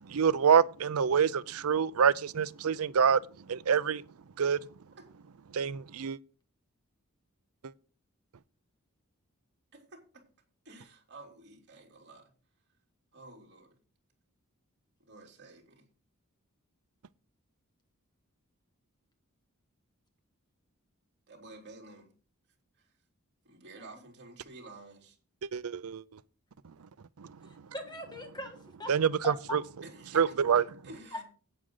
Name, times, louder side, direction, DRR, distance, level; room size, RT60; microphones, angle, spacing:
voice 1, 0.0-3.2 3.5-4.0 4.4-4.6 5.5-6.2 25.5-26.0 27.2-27.3 28.9-29.6 30.2-30.6, right 7 dB, 80° right, 0.5 m, -26 dB
voice 2, 9.7-10.2 10.6-12.3 13.1-13.7 15.0-15.8 21.3-22.1 23.4-25.2 29.8-31.2, right 2 dB, 55° right, 3.2 m, -50 dB
voice 3, 27.4-28.9 29.2-29.6 31.1-31.2, left 2 dB, 20° left, 1.6 m, -40 dB
11.0 x 8.8 x 3.9 m
head